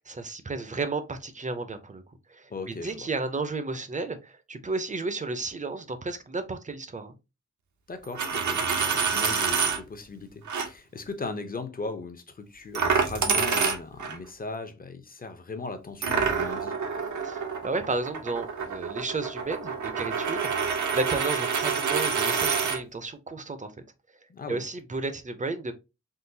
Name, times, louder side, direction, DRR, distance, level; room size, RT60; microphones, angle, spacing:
voice 1, 0.0-2.0 2.3-7.1 17.2-20.5 20.9-23.7 24.5-25.7, right 3 dB, 25° right, 0.5 m, -33 dB
voice 2, 2.5-3.1 7.9-16.7 24.3-24.6, left 3 dB, 30° left, 0.5 m, -38 dB
Coin (dropping), 8.0-9.8 10.5-10.7 12.7-14.2 16.0-22.8, right 5 dB, 80° right, 0.7 m, -27 dB
3.7 x 2.3 x 2.6 m
wide cardioid pair, 110°, 29 cm